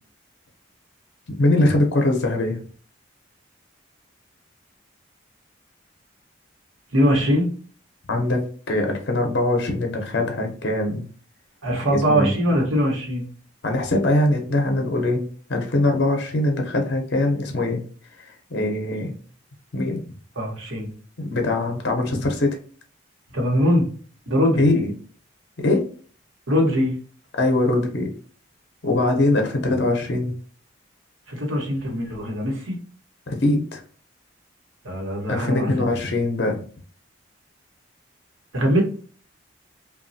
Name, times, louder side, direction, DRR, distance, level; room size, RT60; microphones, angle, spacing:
voice 1, 1.4-2.6 8.1-11.0 11.8-12.3 13.6-15.2 15.5-17.8 18.2-19.2 19.7-20.0 21.2-22.6 24.6-24.9 25.6-25.8 27.3-28.1 28.8-30.3 33.3-33.8 35.3-36.6, left 2 dB, 55° left, 3 dB, 0.6 m, -22 dB
voice 2, 6.9-7.5 11.6-13.3 20.4-20.9 23.3-23.9 24.3-24.6 26.5-26.9 31.3-32.8 34.8-35.8 38.5-38.8, equal, 90° right, 0 dB, 1.0 m, -21 dB
3.0 x 2.2 x 2.6 m, 0.43 s
head